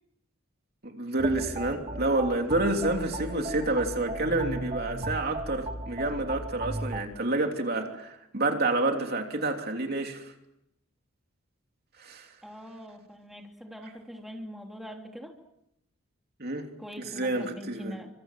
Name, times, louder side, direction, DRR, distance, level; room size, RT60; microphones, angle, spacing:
voice 1, 0.8-10.3 12.0-12.3 16.4-16.7 17.0-17.9, right 2 dB, 45° right, 3 dB, 3.2 m, -29 dB
sound 1, 1.2-7.0, right 1 dB, 25° right, 2.6 m, -36 dB
voice 2, 12.4-15.4 16.8-18.1, equal, ahead, 1 dB, 3.3 m, -43 dB
29.5 x 26.0 x 7.6 m, 0.82 s
head